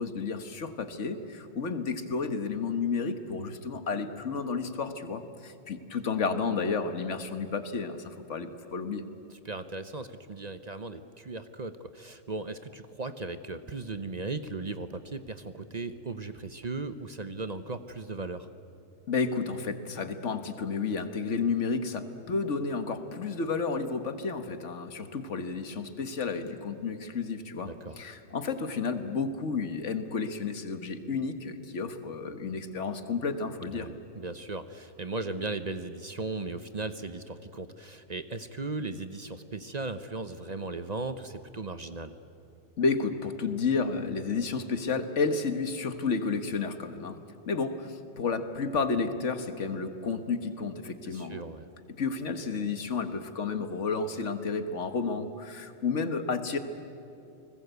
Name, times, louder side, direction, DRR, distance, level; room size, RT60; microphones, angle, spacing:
voice 1, 0.0-9.0 19.1-33.9 42.8-47.2 47.5-51.4 51.9-56.6, left 4 dB, 75° left, 9 dB, 1.7 m, -31 dB
voice 2, 9.3-18.5 27.7-28.0 33.6-42.1 51.1-51.7, right 3 dB, 40° right, 10 dB, 0.9 m, -37 dB
30.0 x 20.0 x 8.2 m, 2.7 s
omnidirectional pair, 1.2 m